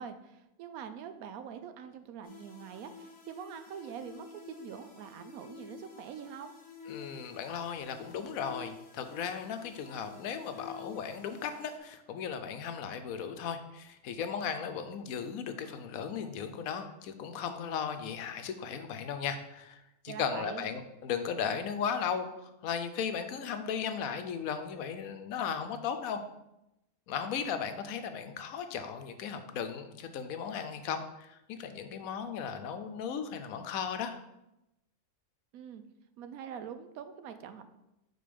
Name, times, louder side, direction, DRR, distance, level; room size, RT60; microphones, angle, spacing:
voice 1, 0.0-6.5 20.1-20.7 35.5-35.8 36.2-37.7, right 8 dB, 90° right, 9 dB, 1.1 m, -44 dB
sound 1, 2.2-11.8, left 6 dB, 60° left, 1.3 m, -51 dB
voice 2, 6.9-26.2 27.1-34.2, left 7 dB, 85° left, 8 dB, 1.1 m, -36 dB
5.2 x 4.1 x 5.1 m, 0.90 s
omnidirectional pair, 1.5 m